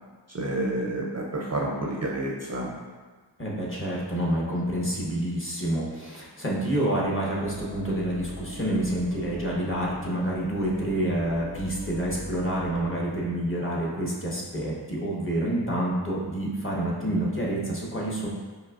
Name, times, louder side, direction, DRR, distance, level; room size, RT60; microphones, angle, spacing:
voice 1, 0.3-2.8, right 1 dB, 40° right, -2 dB, 0.4 m, -29 dB
voice 2, 3.4-18.3, right 1 dB, 30° left, -4 dB, 0.9 m, -28 dB
sound 1, 7.3-13.2, equal, 85° left, 1.4 m, -40 dB
4.6 x 2.8 x 2.3 m, 1.4 s
wide cardioid pair, 60°, 44 cm